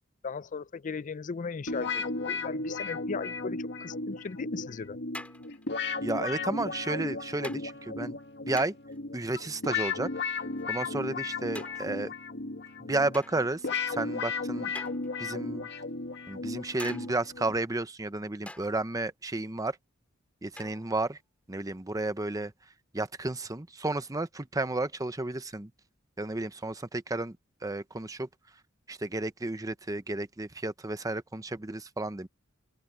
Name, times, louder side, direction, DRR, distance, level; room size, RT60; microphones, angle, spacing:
voice 1, 0.2-5.0, left 5 dB, 40° left, 0.4 m, -37 dB
sound 1, 1.7-17.6, left 4 dB, 55° left, 1.8 m, -35 dB
sound 2, 4.3-4.4 5.1-5.8 6.7-6.9 7.4-7.7 8.6-9.0 10.2-10.8 11.5-12.1 13.1-13.7 14.7-15.4 16.8-17.3 18.5-18.8 20.6-21.0, left 1 dB, 5° left, 5.4 m, -45 dB
voice 2, 6.0-8.2 8.4-8.7 9.1-10.1 10.7-12.1 12.8-14.7 15.2-15.7 16.3-19.8 20.4-21.2 21.5-22.5 22.9-25.7 26.2-27.4 27.6-28.3 28.9-32.3, right 2 dB, 15° right, 0.8 m, -32 dB
open air
head